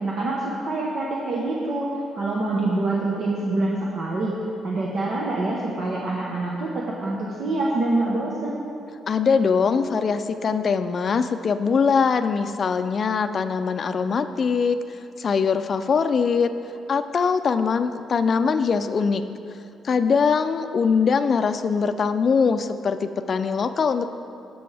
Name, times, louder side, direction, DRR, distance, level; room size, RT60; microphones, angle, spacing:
voice 1, 0.0-4.4 4.6-8.6, right 2 dB, 60° right, -4 dB, 1.2 m, -26 dB
voice 2, 9.1-14.8 15.2-16.5 16.9-19.2 19.8-24.1, left 5 dB, 45° left, 10 dB, 0.4 m, -22 dB
16.5 x 6.1 x 3.4 m, 2.6 s
cardioid pair, 90°, 0 cm